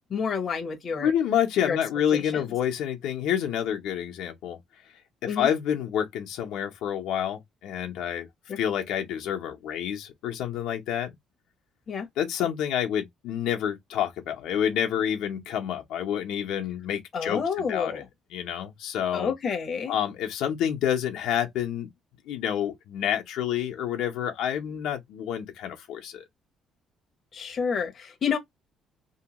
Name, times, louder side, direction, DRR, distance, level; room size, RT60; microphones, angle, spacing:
voice 1, 0.1-1.1 1.6-1.8 2.1-2.5 5.3-5.5 8.5-8.6 11.9-12.1 17.1-18.0 19.1-19.9 27.3-28.4, left 6 dB, 30° left, 0.6 m, -29 dB
voice 2, 1.0-4.6 5.2-8.3 8.6-11.2 12.2-18.0 18.3-19.3 19.9-21.9 22.3-26.2, left 9 dB, 80° left, 0.7 m, -28 dB
2.7 x 2.2 x 2.8 m
cardioid pair, 175°, 0 cm